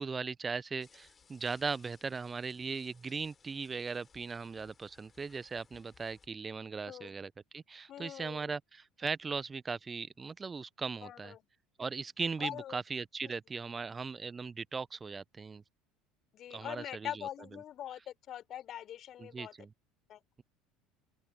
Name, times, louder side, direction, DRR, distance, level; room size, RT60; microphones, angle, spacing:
voice 1, 0.0-11.3 11.8-15.6 16.5-17.2 19.2-19.7, right 5 dB, 25° right, 0.6 m, -38 dB
sound 1, 0.8-6.3, left 6 dB, 30° left, 5.7 m, -64 dB
voice 2, 6.9-7.2 7.9-8.5 11.0-11.5 12.4-12.8 13.2-13.4 16.3-19.5 20.1-20.2, left 11 dB, 45° left, 4.3 m, -43 dB
open air
figure-of-eight pair, 65°, 0 cm